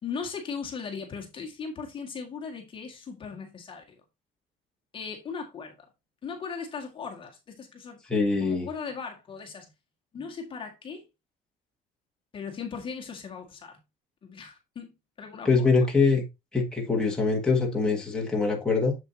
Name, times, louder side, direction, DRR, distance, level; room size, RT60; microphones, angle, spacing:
voice 1, 0.0-3.8 4.9-5.8 6.2-8.0 8.4-9.7 10.1-11.0 12.3-13.8 14.2-15.7, left 5 dB, 30° left, 1.8 m, -38 dB
voice 2, 8.1-8.7 15.4-16.2 16.5-19.0, left 4 dB, 5° left, 1.8 m, -23 dB
7.5 x 7.3 x 2.8 m
cardioid pair, 175°, 18 cm